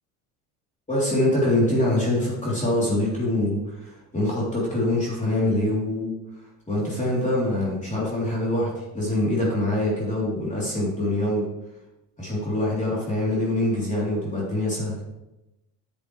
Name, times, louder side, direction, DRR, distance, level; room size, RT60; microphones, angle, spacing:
voice 1, 0.9-6.1 6.7-11.5 12.2-14.9, left 1 dB, 20° left, -6 dB, 3.6 m, -24 dB
9.4 x 8.1 x 3.3 m, 0.96 s
supercardioid pair, 85°, 37 cm